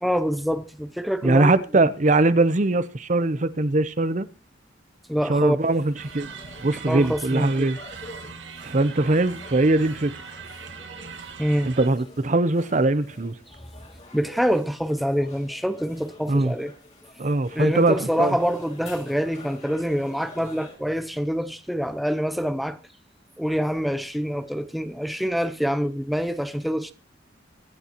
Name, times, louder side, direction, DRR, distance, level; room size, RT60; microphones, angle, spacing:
voice 1, 0.0-1.6 5.1-5.6 6.9-7.7 11.4-11.7 14.1-16.7 17.6-22.8 23.4-26.9, equal, ahead, 0.6 m, -25 dB
voice 2, 1.2-4.3 5.3-6.3 6.6-7.8 8.6-10.1 11.6-13.3 16.3-16.5 17.2-18.4, right 2 dB, 40° right, 0.7 m, -21 dB
sound 1, 5.6-20.8, left 2 dB, 40° left, 3.7 m, -48 dB
sound 2, 6.0-11.9, right 5 dB, 85° right, 1.7 m, -40 dB
23.5 x 11.0 x 2.9 m
head